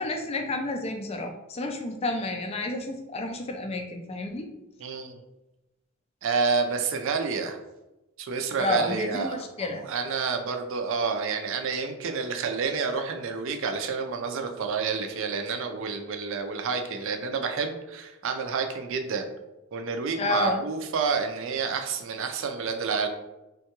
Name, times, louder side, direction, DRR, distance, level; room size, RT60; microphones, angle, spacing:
voice 1, 0.0-4.5 8.6-9.8 20.2-20.6, left 2 dB, 25° left, 4 dB, 0.3 m, -30 dB
voice 2, 4.8-5.2 6.2-7.6 8.2-19.3 19.7-23.1, right 5 dB, 60° right, 5 dB, 0.4 m, -29 dB
3.6 x 2.2 x 2.9 m, 0.99 s
head